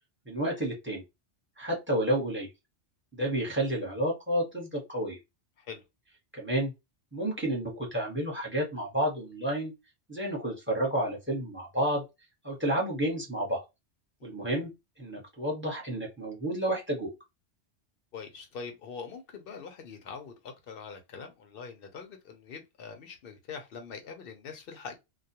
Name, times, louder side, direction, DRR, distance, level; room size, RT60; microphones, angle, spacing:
voice 1, 0.3-1.0 1.6-2.5 3.1-5.2 6.3-6.7 7.1-9.7 10.1-12.0 12.4-13.6 14.2-14.7 15.0-17.1, right 1 dB, 10° right, 0.9 m, -30 dB
voice 2, 18.1-24.9, left 5 dB, 60° left, 0.8 m, -43 dB
2.3 x 2.2 x 2.7 m
omnidirectional pair, 1.2 m